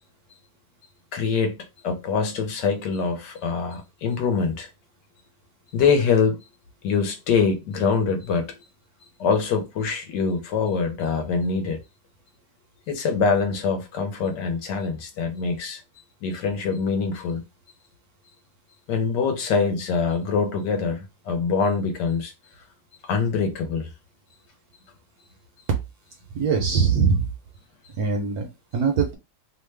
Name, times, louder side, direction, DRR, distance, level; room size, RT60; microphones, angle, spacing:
voice 1, 1.1-1.5 1.8-4.7 5.7-6.4 6.8-8.5 9.2-11.8 12.9-15.8 16.2-17.4 18.9-22.3 23.1-23.9, left 5 dB, 70° left, 1.2 m, -24 dB
voice 2, 26.3-27.3 28.0-29.1, right 5 dB, 70° right, 0.9 m, -22 dB
3.1 x 2.1 x 3.2 m
omnidirectional pair, 2.0 m